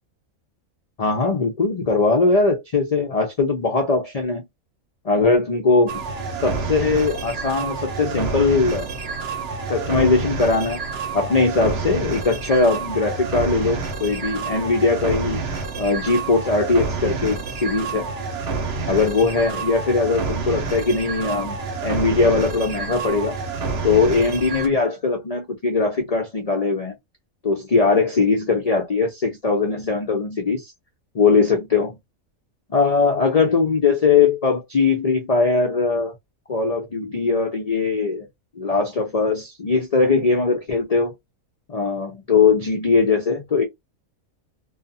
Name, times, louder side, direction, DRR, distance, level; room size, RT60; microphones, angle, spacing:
voice 1, 1.0-4.4 5.0-6.0 6.4-8.9 9.7-10.8 11.1-15.4 15.8-18.1 18.9-23.4 23.8-26.9 27.4-30.7 31.1-31.9 32.7-36.1 36.5-38.3 38.6-41.1 41.7-43.6, left 4 dB, 80° left, 0.3 m, -20 dB
sound 1, 5.9-24.7, right 4 dB, 55° right, 0.8 m, -28 dB
2.4 x 2.3 x 2.5 m
omnidirectional pair, 1.5 m